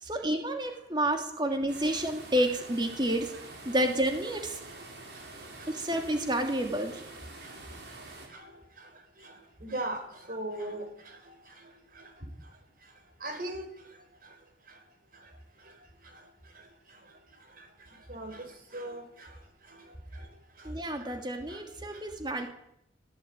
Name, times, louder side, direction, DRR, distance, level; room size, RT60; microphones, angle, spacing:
voice 1, 0.0-3.3 3.6-4.6 5.7-7.0 20.6-22.5, right 1 dB, 25° right, 4 dB, 2.7 m, -29 dB
sound 1, 1.7-8.3, right 2 dB, 65° right, 5.2 m, -46 dB
voice 2, 9.6-10.0 10.3-10.8 13.2-13.7 18.1-18.4 18.7-19.0, right 1 dB, 50° right, 6 dB, 4.8 m, -35 dB
20.0 x 16.5 x 9.1 m, 0.76 s
head